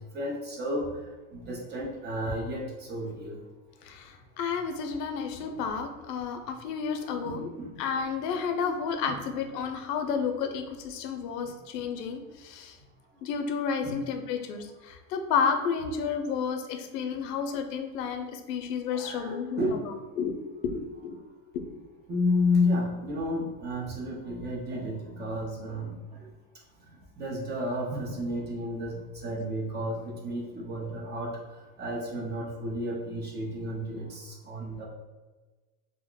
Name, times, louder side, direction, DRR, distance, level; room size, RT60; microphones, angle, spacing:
voice 1, 0.1-0.8 1.3-2.6 2.9-3.4 5.4-5.5 7.1-7.7 13.8-14.0 18.9-19.8 22.1-25.9 27.2-31.3 31.8-34.9, left 1 dB, 20° right, -2 dB, 0.5 m, -31 dB
voice 2, 3.8-7.5 7.8-12.8 13.2-20.4 20.6-21.2 21.7-21.8, left 6 dB, 90° left, 5 dB, 0.6 m, -31 dB
2.4 x 2.1 x 3.6 m, 1.3 s
supercardioid pair, 120°, 47 cm